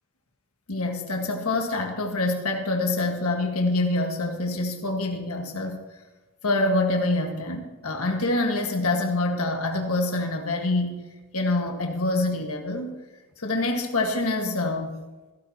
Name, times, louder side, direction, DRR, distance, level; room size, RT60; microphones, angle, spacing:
voice 1, 0.7-5.8 6.4-11.0 11.3-13.0 13.4-15.0, left 2 dB, 75° left, 2 dB, 1.6 m, -26 dB
17.0 x 15.5 x 2.9 m, 1.2 s
head